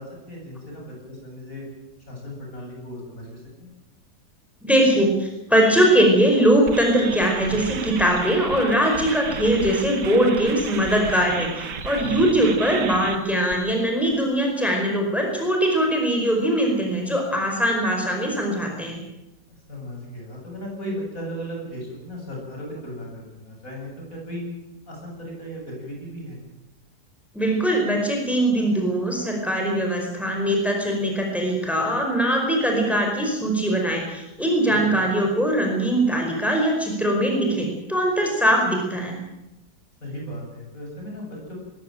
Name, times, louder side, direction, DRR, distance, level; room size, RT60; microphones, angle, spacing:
voice 1, 0.0-1.7 2.1-3.7 12.0-12.3 19.7-24.5 24.9-26.4 34.6-35.0 40.0-41.6, equal, 55° left, -2 dB, 8.5 m, -36 dB
voice 2, 4.6-19.0 27.3-39.2, right 1 dB, ahead, 1 dB, 4.8 m, -21 dB
sound 1, 5.6-6.0 6.7-14.2, right 6 dB, 90° right, 2.0 m, -34 dB
21.0 x 16.0 x 9.0 m, 0.94 s
omnidirectional pair, 1.8 m